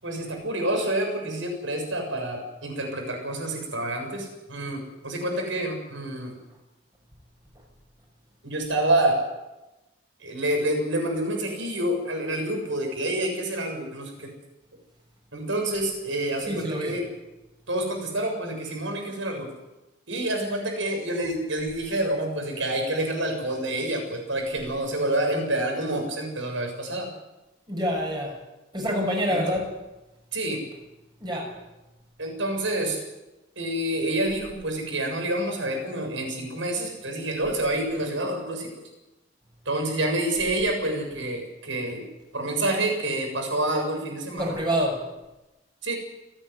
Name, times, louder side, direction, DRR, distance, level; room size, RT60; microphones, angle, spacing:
voice 1, 0.0-6.4 8.4-9.2 10.2-14.3 15.3-17.0 17.7-19.5 20.1-27.1 29.3-29.4 30.3-30.7 32.2-33.0 33.6-38.7 39.7-42.1 42.3-44.6 45.8-46.0, right 1 dB, 75° right, 2 dB, 7.2 m, -28 dB
voice 2, 16.5-16.9 27.7-28.4 28.7-29.7 31.2-31.5 44.4-45.0, equal, 20° right, 0 dB, 6.6 m, -26 dB
30.0 x 10.5 x 9.8 m, 1.0 s
head